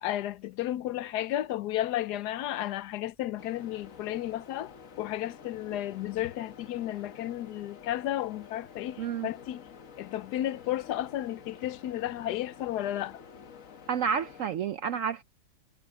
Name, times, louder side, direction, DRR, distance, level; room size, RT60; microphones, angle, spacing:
voice 1, 0.0-9.7 10.0-13.2, left 13 dB, 80° left, 1.2 m, -33 dB
sound 1, 3.4-14.5, left 6 dB, 55° left, 1.5 m, -50 dB
voice 2, 9.0-9.3 13.9-15.2, right 7 dB, 65° right, 0.9 m, -30 dB
omnidirectional pair, 1.7 m